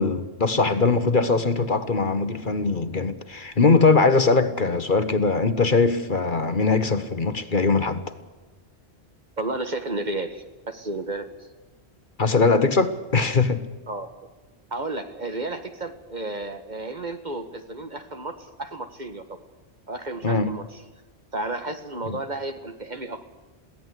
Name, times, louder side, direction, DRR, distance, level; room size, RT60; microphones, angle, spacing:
voice 1, 0.0-8.0 12.2-13.6 20.2-20.5, left 4 dB, 50° left, 1.4 m, -21 dB
voice 2, 9.4-11.3 13.9-14.1 14.7-19.4 19.9-20.8 21.3-23.3, right 2 dB, 40° right, 1.8 m, -32 dB
23.0 x 17.0 x 8.3 m
omnidirectional pair, 1.1 m